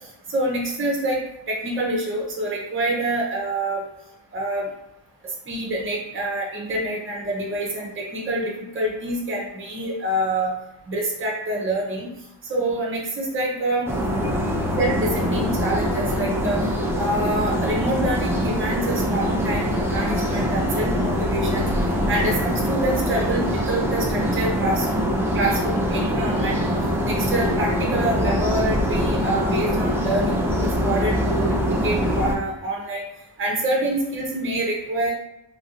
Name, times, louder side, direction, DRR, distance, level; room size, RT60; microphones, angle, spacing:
voice 1, 0.3-1.2 1.5-3.8 4.3-4.7 5.5-10.5 10.9-12.1 12.4-13.9 14.8-16.6 17.0-21.7 22.1-24.9 25.3-26.6 27.0-33.0 33.4-35.1, right 1 dB, 25° right, -2 dB, 0.7 m, -26 dB
sound 1, 13.9-32.3, equal, 5° right, 0.3 m, -23 dB
2.9 x 2.5 x 2.8 m, 0.89 s
wide cardioid pair, 125°, 48 cm